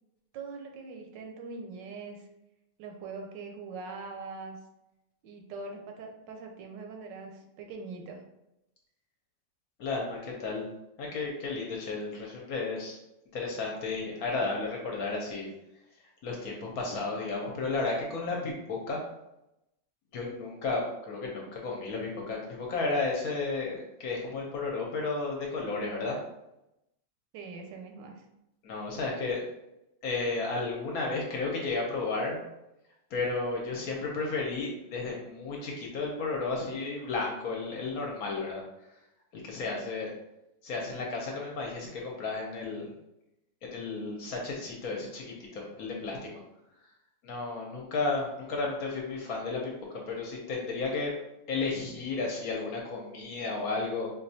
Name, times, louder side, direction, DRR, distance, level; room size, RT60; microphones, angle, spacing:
voice 1, 0.3-2.3 2.8-4.6 5.2-8.2 27.3-28.2, right 4 dB, 85° right, 3 dB, 1.3 m, -42 dB
voice 2, 9.8-10.7 11.0-13.0 13.3-15.5 16.2-19.0 20.1-26.2 28.6-29.4 30.0-32.4 33.1-38.6 39.3-40.1 40.6-42.9 43.7-46.2 47.2-51.2 51.5-54.1, left 3 dB, 65° left, -1 dB, 1.0 m, -33 dB
4.2 x 2.3 x 2.7 m, 0.89 s
omnidirectional pair, 1.9 m